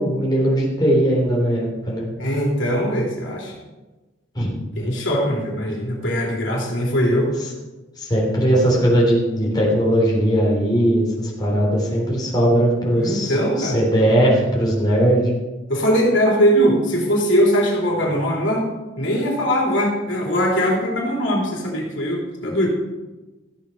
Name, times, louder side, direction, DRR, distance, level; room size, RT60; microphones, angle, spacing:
voice 1, 0.0-2.1 4.3-4.6 8.0-11.1 11.4-15.3, right 1 dB, 20° left, -4 dB, 3.4 m, -19 dB
voice 2, 2.2-3.5 4.8-7.3 12.9-13.8 15.7-18.7 19.0-22.7, equal, 65° left, -2 dB, 3.4 m, -20 dB
14.5 x 8.4 x 5.5 m, 1.2 s
head